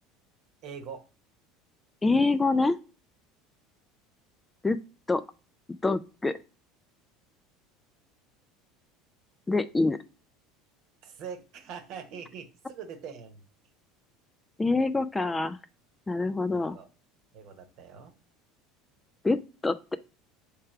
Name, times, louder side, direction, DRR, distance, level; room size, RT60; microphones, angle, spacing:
voice 1, 0.6-1.0 11.0-13.4 16.5-16.9 17.3-18.2, right 7 dB, 60° right, 7 dB, 1.0 m, -43 dB
voice 2, 2.0-2.8 4.6-4.8 5.1-5.2 5.8-6.3 9.5-10.0 14.6-15.6 16.1-16.8 19.2-20.0, left 3 dB, 15° left, 12 dB, 0.3 m, -25 dB
3.3 x 3.3 x 4.6 m, 0.33 s
supercardioid pair, 105°, 0 cm